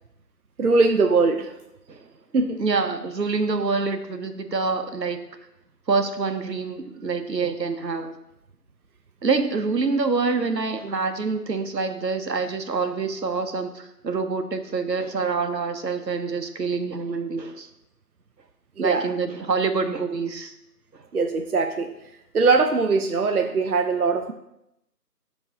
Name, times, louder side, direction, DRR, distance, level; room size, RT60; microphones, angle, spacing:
voice 1, 0.6-1.5 2.3-2.6 18.8-19.0 21.1-21.9 22.3-24.3, right 4 dB, 65° right, 5 dB, 0.5 m, -21 dB
voice 2, 2.6-5.2 5.9-8.2 9.2-17.7 18.8-20.5 20.9-21.0, right 4 dB, 85° right, 8 dB, 0.8 m, -26 dB
8.2 x 3.0 x 3.7 m, 0.84 s
figure-of-eight pair, 175°, 49 cm